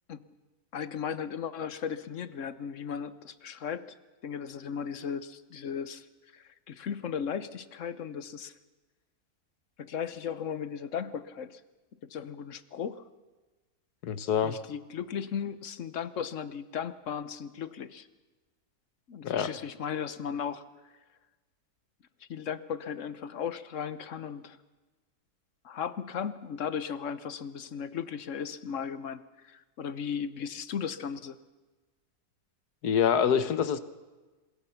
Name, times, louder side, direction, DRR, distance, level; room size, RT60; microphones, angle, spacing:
voice 1, 0.7-4.0 4.2-6.1 6.3-8.5 9.8-11.6 12.0-13.0 14.4-18.1 19.1-20.6 22.3-24.6 25.6-31.4, left 7 dB, 55° left, 14 dB, 1.3 m, -36 dB
voice 2, 14.0-14.6 19.2-19.5 32.8-33.8, left 8 dB, 85° left, 13 dB, 1.6 m, -26 dB
27.0 x 21.5 x 5.9 m, 1.2 s
omnidirectional pair, 1.6 m